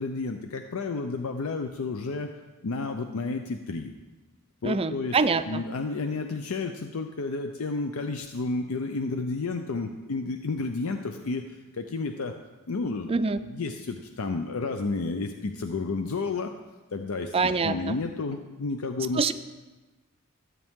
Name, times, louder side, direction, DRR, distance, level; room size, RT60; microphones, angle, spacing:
voice 1, 0.0-2.3 2.6-3.9 4.6-5.2 5.5-11.4 11.8-12.3 12.7-13.1 13.4-16.5 16.9-19.3, left 3 dB, 75° left, 6 dB, 0.6 m, -31 dB
voice 2, 4.6-5.6 13.1-13.4 17.3-18.0 19.1-19.3, right 4 dB, 25° right, 11 dB, 0.4 m, -25 dB
13.5 x 8.3 x 3.6 m, 1.2 s
head